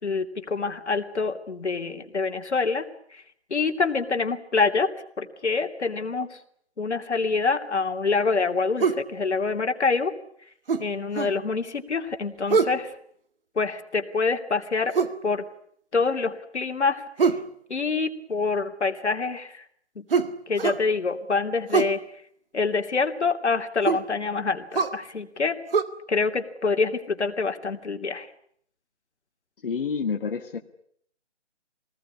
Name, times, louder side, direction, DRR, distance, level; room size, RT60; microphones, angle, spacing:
voice 1, 0.0-2.9 3.1-3.2 3.5-4.9 5.2-6.4 6.8-10.1 10.8-12.9 13.5-14.9 15.2-15.5 15.9-17.3 17.7-19.6 20.0-20.1 20.5-22.0 22.5-25.6 26.1-28.3, left 4 dB, 70° left, 6 dB, 2.9 m, -26 dB
sound 1, 8.8-9.1 10.7-11.4 12.5-12.8 14.9-15.2 17.2-17.5 20.1-20.9 21.7-22.0 23.9-24.1 24.7-25.0 25.7-25.8, right 5 dB, 50° right, 1.8 m, -23 dB
voice 2, 29.6-30.6, left 5 dB, 50° left, 2 dB, 1.9 m, -28 dB
24.5 x 19.5 x 9.7 m, 0.66 s
hypercardioid pair, 165°, 35 cm